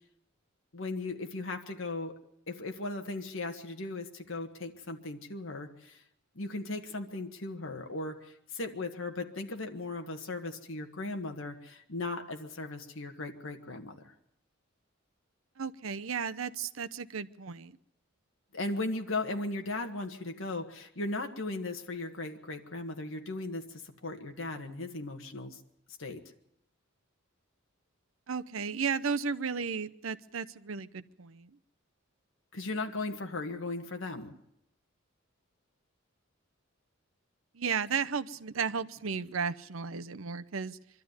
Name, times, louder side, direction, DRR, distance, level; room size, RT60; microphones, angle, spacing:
voice 1, 0.7-2.1 2.5-6.0 6.3-14.1 18.5-25.6 26.0-26.2 32.5-34.3, left 2 dB, 70° left, 4 dB, 1.7 m, -37 dB
voice 2, 15.6-17.8 28.3-31.6 37.5-40.8, right 6 dB, 80° right, 13 dB, 0.8 m, -34 dB
23.5 x 13.0 x 9.6 m, 0.78 s
head